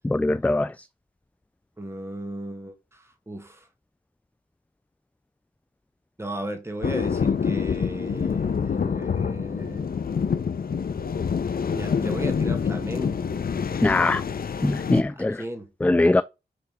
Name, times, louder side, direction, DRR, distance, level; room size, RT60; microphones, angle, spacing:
voice 1, 0.1-0.7 13.8-14.2 14.6-15.4 15.8-16.2, left 2 dB, 10° left, 0.3 m, -21 dB
voice 2, 1.8-3.7 6.2-9.9 11.7-13.2 15.1-15.7, right 1 dB, 15° right, 1.8 m, -36 dB
sound 1, 6.8-15.0, left 6 dB, 60° left, 0.7 m, -26 dB
6.8 x 3.4 x 5.1 m
cardioid pair, 45°, 17 cm